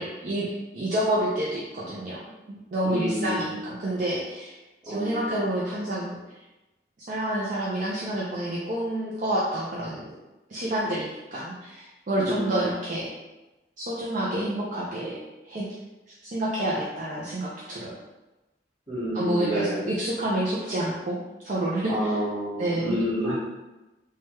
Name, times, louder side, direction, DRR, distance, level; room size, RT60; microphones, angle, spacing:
voice 1, 0.0-2.2 2.5-4.6 4.8-6.1 7.1-10.0 10.5-13.1 13.8-15.1 15.4-15.7 16.3-17.9 19.1-21.2 21.4-22.2 22.6-23.0, right 1 dB, 45° right, -6 dB, 0.4 m, -28 dB
voice 2, 2.8-3.5 4.9-5.3 12.2-12.6 18.9-19.8 21.9-23.3, equal, 25° right, -12 dB, 1.4 m, -29 dB
3.2 x 2.2 x 3.0 m, 1.1 s
head